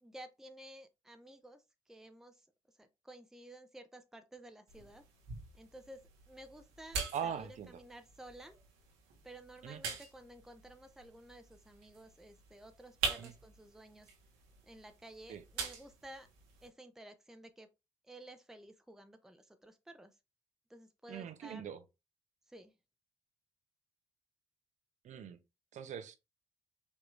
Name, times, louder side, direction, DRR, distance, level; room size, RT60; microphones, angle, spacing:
voice 1, 0.0-1.6 1.9-2.4 2.8-5.0 5.5-8.5 9.2-14.1 14.6-16.3 16.6-17.7 18.0-20.1 20.7-21.7 22.5-22.7, right 1 dB, 5° right, 0.6 m, -54 dB
sound 1, 4.7-16.7, right 5 dB, 75° right, 1.3 m, -44 dB
voice 2, 7.1-7.8 9.6-9.8 13.2-13.3 15.3-15.4 21.1-21.8 25.0-25.4 25.7-26.2, right 8 dB, 55° right, 0.7 m, -41 dB
5.3 x 2.9 x 2.5 m
hypercardioid pair, 50°, 15 cm